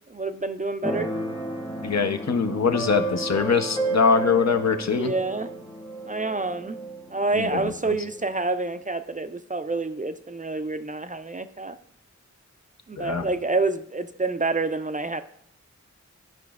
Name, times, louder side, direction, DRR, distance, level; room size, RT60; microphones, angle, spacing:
voice 1, 0.1-1.1 4.9-5.5 6.1-6.8 7.1-11.8 12.9-15.2, right 3 dB, 30° right, 10 dB, 0.3 m, -28 dB
Keyboard (musical), 0.8-8.3, right 2 dB, 15° left, 0.8 m, -32 dB
voice 2, 1.8-5.1 7.3-8.0 13.0-13.2, left 5 dB, 65° left, 8 dB, 0.6 m, -23 dB
12.0 x 5.0 x 2.3 m, 0.71 s
wide cardioid pair, 60°, 29 cm